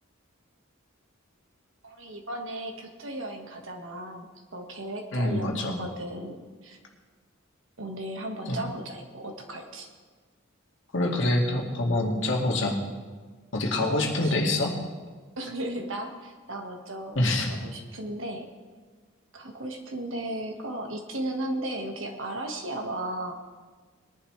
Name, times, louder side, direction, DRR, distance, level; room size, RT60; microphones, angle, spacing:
voice 1, 1.8-6.8 7.8-9.9 13.8-14.5 15.4-18.5 19.3-23.3, right 1 dB, 65° right, 2 dB, 1.7 m, -35 dB
voice 2, 5.1-5.8 8.5-8.6 10.9-12.8 13.5-14.8 17.2-17.5, left 1 dB, 60° left, 0 dB, 2.2 m, -25 dB
21.0 x 11.0 x 3.3 m, 1.4 s
head